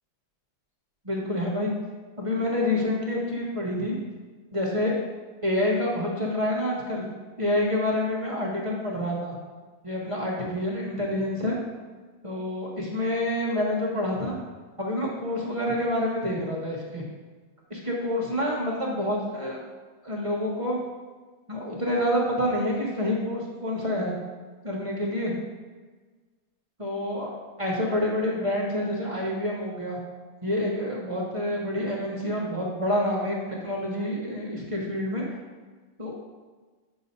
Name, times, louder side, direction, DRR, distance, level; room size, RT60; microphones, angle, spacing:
voice 1, 1.0-1.7 2.2-3.9 4.5-4.9 5.4-7.0 7.4-9.3 9.8-11.6 12.2-14.4 14.8-17.0 17.7-19.6 20.0-20.8 21.5-24.1 24.6-25.3 26.8-30.0 30.4-33.4 33.6-35.2 36.0-36.2, left 1 dB, 25° right, -3 dB, 0.7 m, -27 dB
7.7 x 2.7 x 5.3 m, 1.4 s
omnidirectional pair, 1.8 m